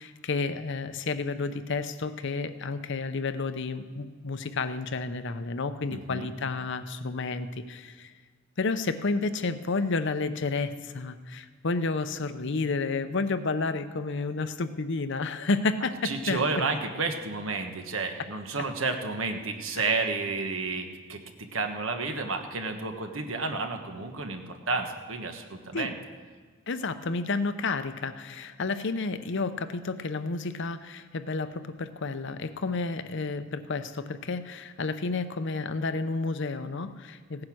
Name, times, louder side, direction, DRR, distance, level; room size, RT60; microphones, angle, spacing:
voice 1, 0.0-8.1 8.6-16.4 25.7-25.9 26.7-37.4, left 3 dB, 65° left, 11 dB, 0.7 m, -31 dB
voice 2, 5.9-6.3 16.0-25.9, right 3 dB, 75° right, 5 dB, 1.4 m, -31 dB
17.0 x 9.7 x 6.2 m, 1.5 s
head